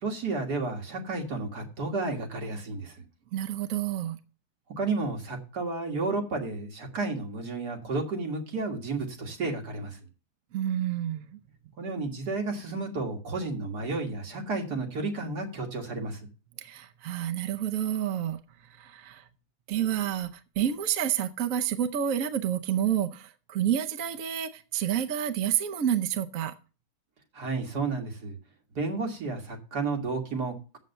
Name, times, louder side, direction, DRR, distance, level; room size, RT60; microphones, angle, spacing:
voice 1, 0.0-3.0 4.8-10.0 11.8-16.3 27.3-28.4 28.8-30.8, right 3 dB, 80° right, 2.4 m, -32 dB
voice 2, 3.3-4.2 10.5-11.4 16.6-19.2 19.7-26.5, right 10 dB, 60° right, 1.1 m, -29 dB
7.5 x 7.5 x 6.6 m
omnidirectional pair, 1.7 m